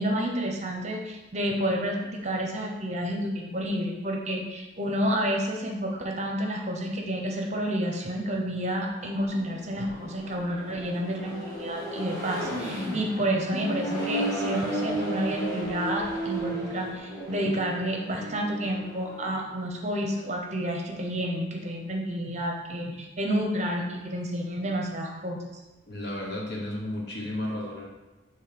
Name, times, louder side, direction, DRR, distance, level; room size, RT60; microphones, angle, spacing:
voice 1, 0.0-25.5, equal, 35° right, 1 dB, 0.8 m, -30 dB
Accelerating revving vroom, 8.9-19.3, right 1 dB, 15° left, 1.8 m, -34 dB
voice 2, 25.9-27.9, left 1 dB, 55° left, -2 dB, 1.3 m, -33 dB
7.2 x 3.2 x 5.2 m, 1.1 s
head